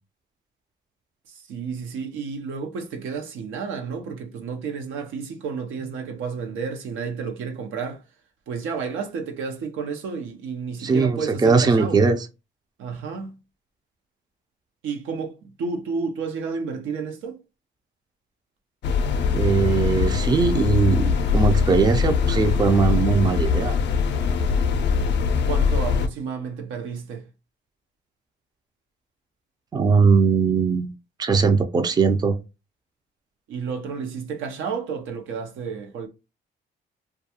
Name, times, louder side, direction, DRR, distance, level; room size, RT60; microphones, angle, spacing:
voice 1, 1.5-8.0 8.5-12.0 12.8-13.3 14.8-17.4 25.4-27.2 33.5-36.1, right 5 dB, 85° right, 0.7 m, -31 dB
voice 2, 10.8-12.3 19.3-23.8 29.7-30.9 31.2-32.4, right 4 dB, 20° right, 0.4 m, -20 dB
sound 1, 18.8-26.1, left 5 dB, 65° left, 0.4 m, -22 dB
2.3 x 2.3 x 2.8 m
cardioid pair, 90°, 20 cm